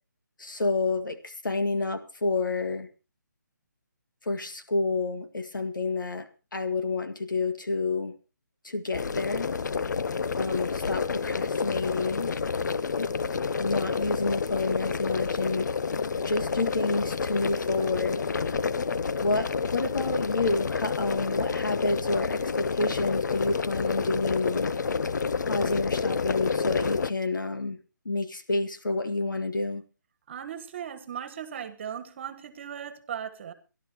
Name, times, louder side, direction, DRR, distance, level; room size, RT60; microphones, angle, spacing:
voice 1, 0.4-2.9 4.2-8.2 8.6-9.5 10.4-12.4 13.0-13.1 13.6-15.7 16.2-18.3 19.2-24.8 25.5-27.8 28.1-29.8, left 3 dB, 85° left, 2.0 m, -29 dB
sound 1, 8.9-27.1, left 5 dB, 70° left, 0.6 m, -29 dB
voice 2, 30.3-33.5, right 8 dB, 35° right, 1.5 m, -37 dB
25.5 x 11.5 x 3.0 m
hypercardioid pair, 160°, 10 cm